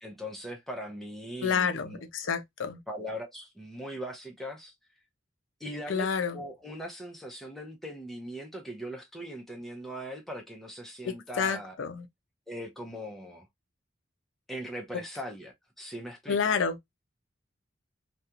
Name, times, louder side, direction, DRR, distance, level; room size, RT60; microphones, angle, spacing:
voice 1, 0.0-2.0 2.9-4.7 5.6-11.8 12.5-13.5 14.5-16.5, equal, ahead, 0.6 m, -40 dB
voice 2, 1.4-2.8 5.9-6.4 11.0-12.1 16.3-16.8, left 6 dB, 75° left, 0.5 m, -29 dB
2.4 x 2.2 x 2.7 m
head